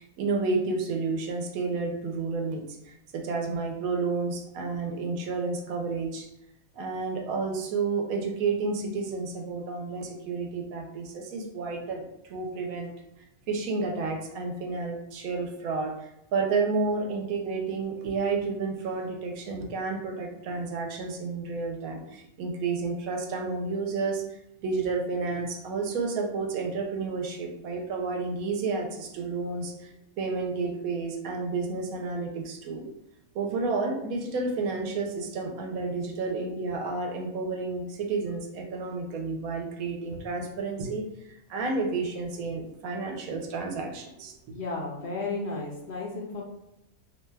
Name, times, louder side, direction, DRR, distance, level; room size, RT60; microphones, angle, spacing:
voice 1, 0.0-6.3 6.8-12.9 13.5-24.2 24.6-32.9 33.3-41.1 41.5-44.3, right 4 dB, 80° right, 2 dB, 1.0 m, -31 dB
voice 2, 44.5-46.4, left 3 dB, 65° left, -2 dB, 0.7 m, -33 dB
2.7 x 2.2 x 3.2 m, 0.85 s
omnidirectional pair, 1.5 m